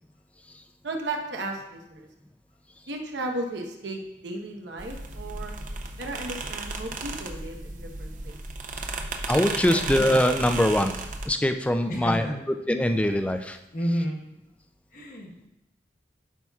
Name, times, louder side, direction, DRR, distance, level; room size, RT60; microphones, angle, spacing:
voice 1, 0.8-2.1 2.9-5.6 6.0-8.4, right 2 dB, 85° right, 2 dB, 1.0 m, -35 dB
sound 1, 4.8-11.3, right 3 dB, 45° right, 0.6 m, -34 dB
voice 2, 9.3-10.9 11.2-13.6, left 1 dB, 5° left, 7 dB, 0.3 m, -23 dB
voice 3, 11.9-12.4 13.7-14.2 14.9-15.5, equal, 50° left, 0 dB, 1.2 m, -30 dB
12.0 x 5.6 x 2.4 m, 0.87 s
head